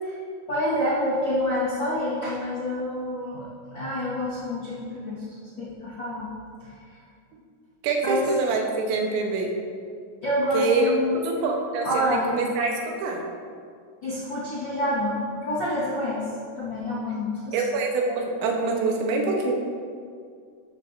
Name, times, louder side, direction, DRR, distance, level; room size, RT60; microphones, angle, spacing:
voice 1, 0.5-6.3 6.6-7.0 8.0-8.3 10.2-12.4 14.0-16.3 16.6-17.6, left 1 dB, 60° left, -9 dB, 1.2 m, -28 dB
voice 2, 7.8-9.5 10.5-10.9 11.2-13.2 17.5-19.5, right 3 dB, 85° right, 1 dB, 3.4 m, -25 dB
12.5 x 10.0 x 2.7 m, 2.2 s
omnidirectional pair, 5.2 m